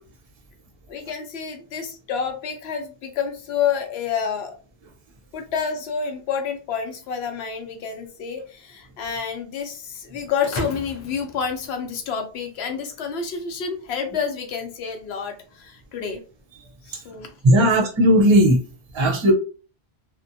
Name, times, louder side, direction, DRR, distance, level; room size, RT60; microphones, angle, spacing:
voice 1, 0.9-4.6 5.3-16.2 16.8-17.7, left 6 dB, 90° left, 5 dB, 0.9 m, -29 dB
sound 1, 10.4-12.4, left 2 dB, 45° left, 0.4 m, -35 dB
voice 2, 17.4-18.6 18.9-19.3, equal, 35° right, 1 dB, 0.5 m, -16 dB
2.7 x 2.1 x 2.5 m, 0.36 s
omnidirectional pair, 1.0 m